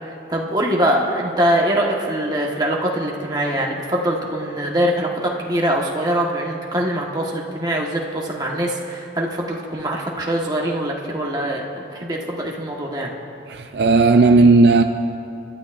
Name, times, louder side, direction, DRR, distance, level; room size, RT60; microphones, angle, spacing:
voice 1, 0.0-11.7 11.9-13.1, right 1 dB, 20° right, -2 dB, 1.4 m, -23 dB
voice 2, 13.5-14.8, right 3 dB, 60° right, 7 dB, 0.4 m, -13 dB
28.0 x 12.0 x 2.6 m, 2.6 s
head